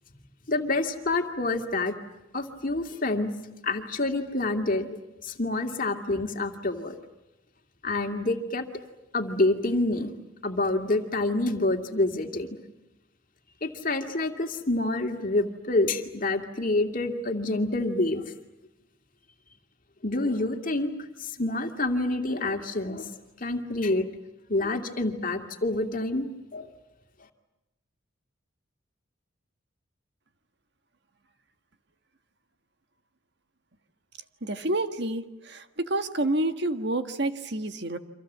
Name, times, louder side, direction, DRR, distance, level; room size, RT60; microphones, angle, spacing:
voice 1, 0.5-2.0 2.3-3.3 3.6-4.9 5.2-6.9 7.8-8.6 9.1-10.1 10.4-12.6 13.6-18.2 20.0-20.9 21.2-23.1 23.4-24.1 24.5-26.3 26.5-26.7, left 2 dB, 40° left, 5 dB, 2.4 m, -27 dB
voice 2, 34.4-38.0, right 1 dB, 55° right, 8 dB, 1.6 m, -29 dB
29.5 x 26.0 x 7.4 m, 0.96 s
head